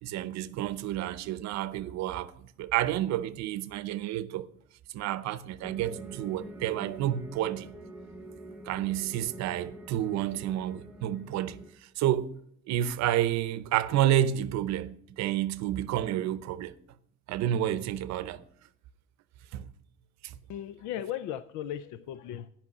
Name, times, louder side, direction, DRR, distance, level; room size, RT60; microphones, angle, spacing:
voice 1, 0.0-4.5 4.9-7.7 8.7-11.6 12.0-12.4 12.7-16.7 17.3-18.4 19.5-19.7 20.2-20.4, right 12 dB, 65° right, 0.7 m, -30 dB
sound 1, 5.6-11.7, right 1 dB, 5° right, 1.0 m, -46 dB
voice 2, 20.5-22.5, left 11 dB, 85° left, 0.6 m, -36 dB
11.0 x 5.8 x 8.9 m
cardioid pair, 175°, 29 cm